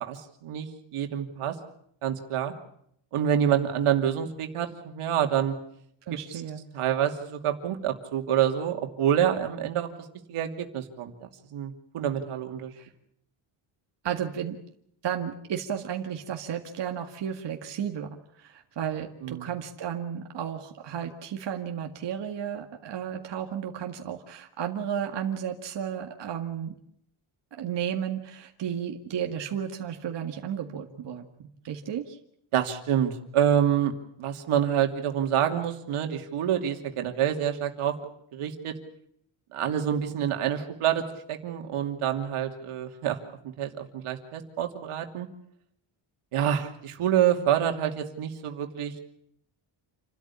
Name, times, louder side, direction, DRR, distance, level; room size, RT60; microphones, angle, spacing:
voice 1, 0.0-1.6 2.0-2.5 3.1-5.5 6.1-6.4 6.7-9.9 10.3-12.7 19.2-19.5 32.5-33.9 34.2-38.0 38.3-38.7 39.5-43.2 43.4-45.3 46.3-49.0, right 9 dB, 90° right, 5 dB, 2.8 m, -27 dB
voice 2, 6.1-6.6 12.8-12.9 14.0-14.6 15.0-26.7 27.6-32.2, right 9 dB, 55° right, 3 dB, 2.0 m, -33 dB
28.5 x 13.0 x 9.9 m, 0.72 s
cardioid pair, 135°, 49 cm